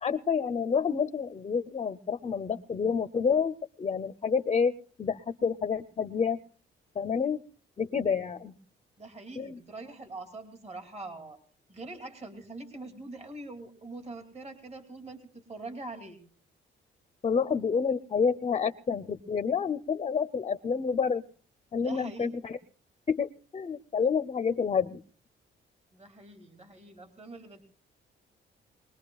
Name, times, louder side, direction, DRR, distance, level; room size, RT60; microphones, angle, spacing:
voice 1, 0.0-4.7 5.0-6.4 7.0-7.4 7.8-8.6 9.4-9.6 17.2-21.2 21.7-22.6 23.1-25.0, left 6 dB, 30° left, 13 dB, 0.7 m, -28 dB
voice 2, 9.0-11.4 11.7-16.2 21.8-22.4 25.9-27.6, right 2 dB, 35° right, 6 dB, 2.7 m, -43 dB
22.5 x 20.0 x 2.3 m, 0.41 s
cardioid pair, 100°, 19 cm